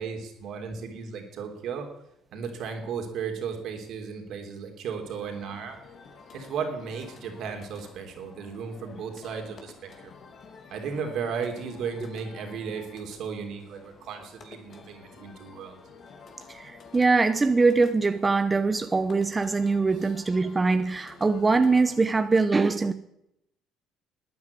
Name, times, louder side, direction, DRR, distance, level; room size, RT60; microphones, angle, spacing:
voice 1, 0.0-1.9 2.3-5.8 6.3-10.1 10.7-15.8 19.9-20.1, right 6 dB, 65° right, 4 dB, 3.3 m, -35 dB
sound 1, 5.0-22.0, left 4 dB, 50° left, 3.0 m, -50 dB
voice 2, 16.5-22.9, right 3 dB, 20° right, 10 dB, 0.8 m, -23 dB
12.5 x 9.4 x 9.7 m, 0.81 s
supercardioid pair, 80°, 0 cm